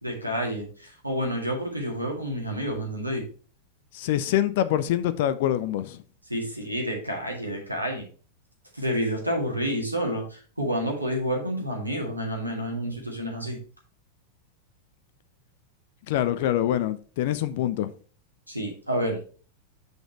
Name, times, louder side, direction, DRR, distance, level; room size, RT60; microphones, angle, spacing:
voice 1, 0.0-3.2 6.3-8.0 8.7-13.6 18.5-19.2, equal, 85° right, 2.0 m, -29 dB
voice 2, 3.9-6.0 16.1-17.9, left 12 dB, 50° left, 0.5 m, -25 dB
6.3 x 5.2 x 4.4 m
figure-of-eight pair, 90°, 0 cm